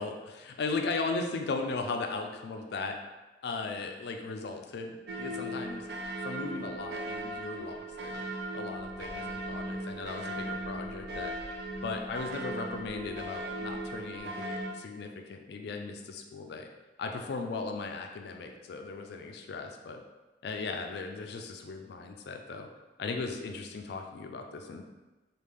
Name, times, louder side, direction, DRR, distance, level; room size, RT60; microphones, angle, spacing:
voice 1, 0.0-3.0 3.4-5.9 6.1-8.2 8.5-11.3 11.8-16.7 17.0-20.0 20.4-22.7 23.0-24.8, left 4 dB, 60° left, 4 dB, 0.3 m, -37 dB
sound 1, 5.1-14.7, right 1 dB, 60° right, 0.5 m, -38 dB
3.2 x 2.4 x 3.5 m, 1.1 s
head